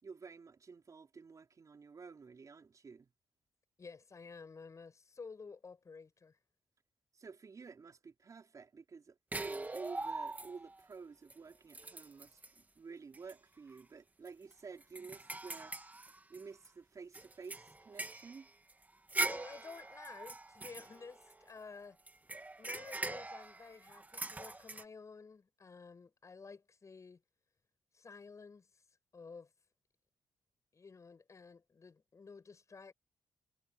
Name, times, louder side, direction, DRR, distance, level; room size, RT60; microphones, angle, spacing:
voice 1, 0.0-3.1 7.1-15.8 16.3-18.5, right 5 dB, 45° right, 4.3 m, -51 dB
voice 2, 3.8-6.4 19.2-22.0 22.6-27.2 27.9-28.8 29.1-29.5 30.7-32.9, left 4 dB, 40° left, 8.0 m, -52 dB
sound 1, 9.3-10.8 11.3-11.4 11.7-12.6 13.1-13.3 13.7-13.8 14.3-16.7 17.1-21.6 22.1-24.8, right 2 dB, 20° right, 2.2 m, -42 dB
cardioid pair, 80°, 8 cm